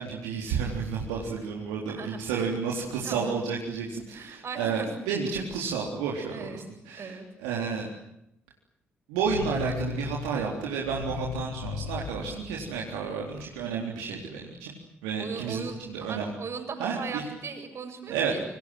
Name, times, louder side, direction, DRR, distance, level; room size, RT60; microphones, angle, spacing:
voice 1, 0.0-7.9 9.1-14.7 15.0-16.3 16.8-17.3 18.1-18.4, right 6 dB, 75° right, -1 dB, 3.9 m, -31 dB
voice 2, 1.9-2.5 2.8-3.4 4.1-4.9 5.3-5.4 6.3-6.6 7.0-7.3 15.2-18.4, right 5 dB, 50° right, 6 dB, 7.4 m, -38 dB
sound 1, 9.2-13.2, left 5 dB, 75° left, 2.4 m, -36 dB
28.0 x 25.0 x 7.9 m, 0.81 s
figure-of-eight pair, 45°, 6 cm